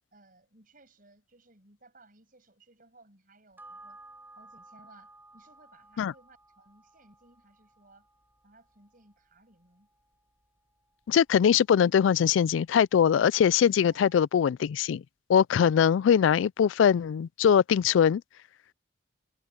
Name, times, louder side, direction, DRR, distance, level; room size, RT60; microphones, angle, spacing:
voice 1, 0.1-4.0 4.4-8.1 8.4-9.9 13.9-14.2, right 2 dB, 45° right, 7.1 m, -59 dB
sound 1, 3.6-12.3 12.7-12.8, right 2 dB, 10° right, 4.9 m, -56 dB
voice 2, 11.1-15.0 15.3-18.2, left 8 dB, 80° left, 0.3 m, -22 dB
head